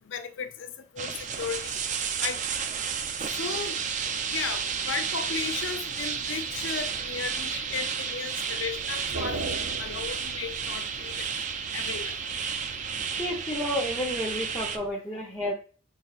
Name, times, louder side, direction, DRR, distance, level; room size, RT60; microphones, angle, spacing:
voice 1, 0.1-0.7 0.9-1.8 2.2-2.4 3.2-3.8 4.3-11.3 11.7-12.1, left 6 dB, 65° left, 0.5 m, -35 dB
sound 1, 1.0-14.8, right 6 dB, 35° right, 0.3 m, -32 dB
sound 2, 1.0-14.9, right 3 dB, 80° right, 0.6 m, -44 dB
voice 2, 13.2-15.5, left 1 dB, 15° left, 0.7 m, -31 dB
5.6 x 3.1 x 2.4 m
head